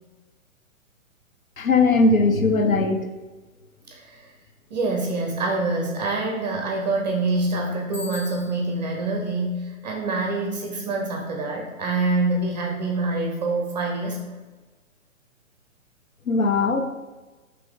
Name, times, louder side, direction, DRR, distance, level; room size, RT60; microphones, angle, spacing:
voice 1, 1.6-3.1 16.3-16.8, left 3 dB, 85° left, 6 dB, 0.7 m, -19 dB
voice 2, 3.9-4.3 4.7-14.4, right 2 dB, 30° right, 1 dB, 0.6 m, -26 dB
Bicycle bell, 7.9-8.9, left 3 dB, 20° left, 0.9 m, -39 dB
4.6 x 3.1 x 3.7 m, 1.3 s
figure-of-eight pair, 125°, 41 cm